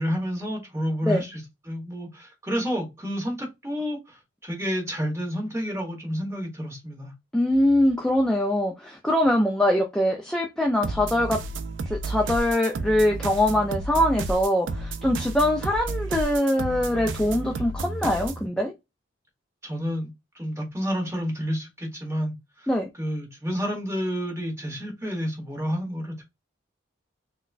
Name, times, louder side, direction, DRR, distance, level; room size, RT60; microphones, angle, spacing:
voice 1, 0.0-7.1 19.6-20.1 20.3-22.7 23.0-26.2, equal, 15° right, 1.2 m, -30 dB
voice 2, 7.3-11.4 11.9-18.7 22.7-22.9, left 1 dB, 5° left, 0.4 m, -23 dB
sound 1, 10.8-18.5, right 2 dB, 75° right, 0.4 m, -32 dB
4.0 x 2.2 x 2.4 m
head